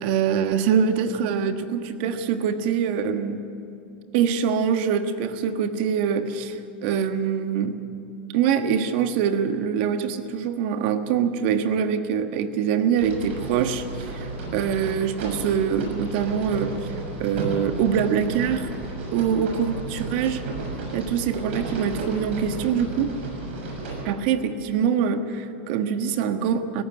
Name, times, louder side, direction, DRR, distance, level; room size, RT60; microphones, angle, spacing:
voice 1, 0.0-3.4 4.1-7.8 8.3-16.8 17.2-18.7 19.1-20.4 20.9-23.1 24.0-26.8, right 7 dB, 60° right, 8 dB, 1.4 m, -24 dB
sound 1, 13.0-24.0, right 3 dB, 75° right, 6.5 m, -33 dB
18.5 x 15.0 x 9.5 m, 2.6 s
supercardioid pair, 130°, 6 cm